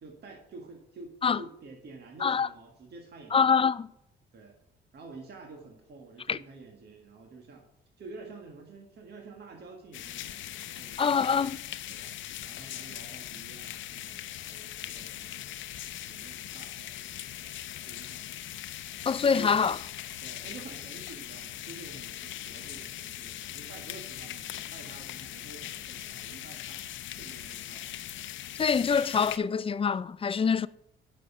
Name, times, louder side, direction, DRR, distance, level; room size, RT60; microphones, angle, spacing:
voice 1, 0.0-3.8 4.3-4.6 4.9-7.7 8.0-11.5 11.9-12.1 12.4-15.6 16.1-17.6 17.9-18.4 19.3-19.6 20.2-26.9 27.1-28.1, right 3 dB, 55° right, 1.8 m, -49 dB
voice 2, 3.3-3.9 6.3-6.4 11.0-11.6 19.1-19.8 28.6-30.7, left 6 dB, 30° left, 0.4 m, -25 dB
sound 1, 9.9-29.4, left 12 dB, 75° left, 0.6 m, -40 dB
9.9 x 6.2 x 5.6 m
cardioid pair, 90°, 20 cm